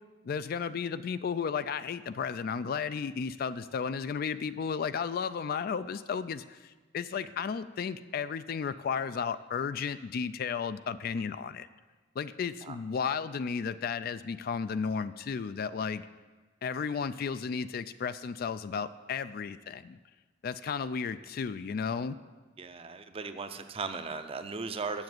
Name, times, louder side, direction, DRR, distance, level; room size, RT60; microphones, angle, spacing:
voice 1, 0.2-11.7 12.2-16.1 16.6-20.0 20.4-22.2, left 6 dB, 55° left, 14 dB, 0.3 m, -33 dB
voice 2, 22.6-25.0, right 4 dB, 30° right, 9 dB, 0.5 m, -37 dB
7.6 x 7.2 x 7.8 m, 1.3 s
head